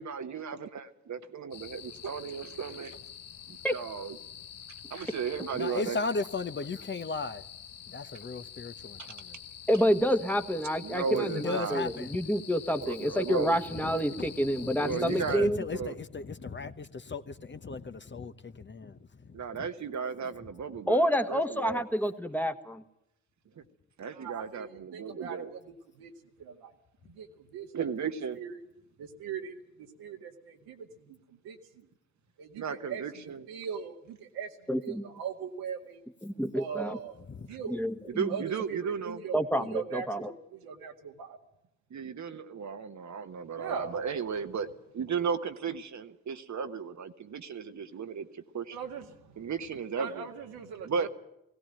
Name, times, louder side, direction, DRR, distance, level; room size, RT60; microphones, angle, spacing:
voice 1, 0.0-2.9 3.5-4.2 4.9-6.0 9.0-9.1 10.8-11.8 12.8-13.6 14.8-15.9 19.3-21.8 24.0-25.5 27.7-28.4 32.6-33.5 37.5-37.6 38.1-39.2 41.9-44.7 44.9-48.8 49.4-50.3 50.8-51.1, right 6 dB, 50° right, 1.4 m, -35 dB
sound 1, 1.5-15.4, left 8 dB, 65° left, 1.3 m, -47 dB
voice 2, 5.5-7.5 7.9-9.4 11.1-12.2 13.8-19.7 37.3-37.5, left 4 dB, 30° left, 1.1 m, -37 dB
voice 3, 9.7-15.6 20.9-22.5 34.7-35.0 36.2-37.0 37.7-38.3 39.3-40.3, equal, 5° left, 1.5 m, -28 dB
voice 4, 24.1-26.1 26.4-26.7 27.1-27.7 28.4-28.5 29.0-31.2 31.4-31.9 32.4-33.0 33.5-34.5 34.8-36.1 36.5-37.8 38.3-41.4 43.5-44.0 48.7-49.4 50.0-51.1, right 7 dB, 75° right, 2.0 m, -40 dB
18.0 x 17.0 x 9.1 m
hypercardioid pair, 40°, 36 cm